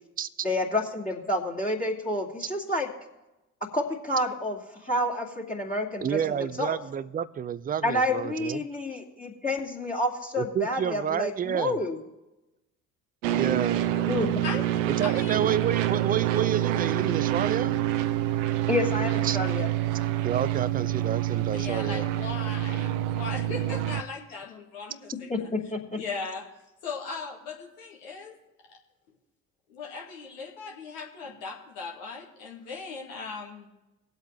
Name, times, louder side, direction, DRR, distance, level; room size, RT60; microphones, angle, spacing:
voice 1, 0.4-2.9 3.7-6.8 7.8-12.0 14.0-14.4 18.7-19.7 25.3-26.0, left 1 dB, 20° left, -2 dB, 2.6 m, -29 dB
voice 2, 6.0-8.6 10.4-11.8 13.4-13.8 15.0-17.8 19.2-19.4 20.2-22.1, right 9 dB, 20° right, 17 dB, 0.5 m, -29 dB
sound 1, 13.2-24.0, right 13 dB, 65° right, 0.8 m, -27 dB
voice 3, 15.0-15.5 21.5-25.5 25.9-26.4 26.8-28.3 29.7-33.7, left 4 dB, 70° left, 0 dB, 2.2 m, -38 dB
20.0 x 8.1 x 3.4 m, 0.99 s
figure-of-eight pair, 50°, 41 cm